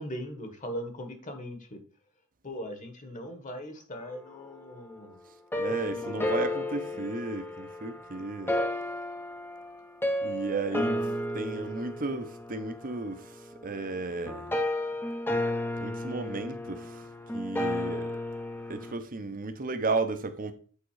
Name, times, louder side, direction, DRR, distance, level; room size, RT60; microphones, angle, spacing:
voice 1, 0.0-1.8 2.4-5.2 5.6-6.3 6.9-7.0 10.7-11.2, equal, 35° left, 1.3 m, -40 dB
sound 1, 5.5-18.9, left 1 dB, 10° left, 0.7 m, -33 dB
voice 2, 5.5-8.5 10.2-11.0 11.3-14.5 15.8-17.1 17.3-18.1 18.7-20.5, right 3 dB, 40° right, 0.8 m, -34 dB
8.5 x 3.8 x 4.8 m
head